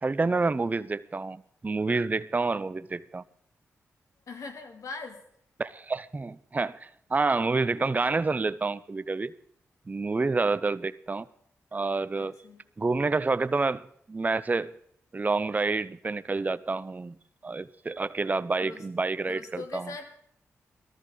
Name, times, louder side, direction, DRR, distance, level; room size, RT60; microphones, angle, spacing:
voice 1, 0.0-3.2 5.6-9.3 9.9-11.3 11.7-12.3 12.8-13.8 14.1-14.7 15.1-17.1 17.4-19.9, right 3 dB, 30° right, 0.5 m, -28 dB
voice 2, 4.3-5.2 12.2-12.6 18.6-18.8 19.3-20.1, left 3 dB, 70° left, 2.6 m, -40 dB
18.5 x 13.5 x 3.8 m
cardioid pair, 55°, 6 cm